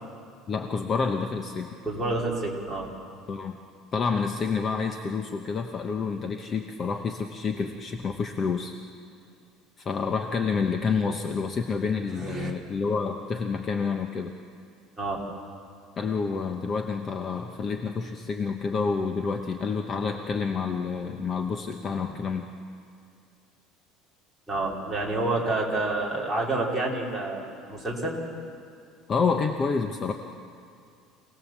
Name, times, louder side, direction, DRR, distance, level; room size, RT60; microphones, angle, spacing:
voice 1, 0.5-1.7 3.3-3.5 3.9-8.7 9.8-14.3 16.0-22.5 29.1-30.1, left 5 dB, 25° left, 4 dB, 0.8 m, -28 dB
voice 2, 1.8-2.9 12.2-12.5 15.0-15.2 24.5-28.2, right 2 dB, 5° right, -5 dB, 3.3 m, -28 dB
26.5 x 18.5 x 7.3 m, 2.3 s
cardioid pair, 170°, 0 cm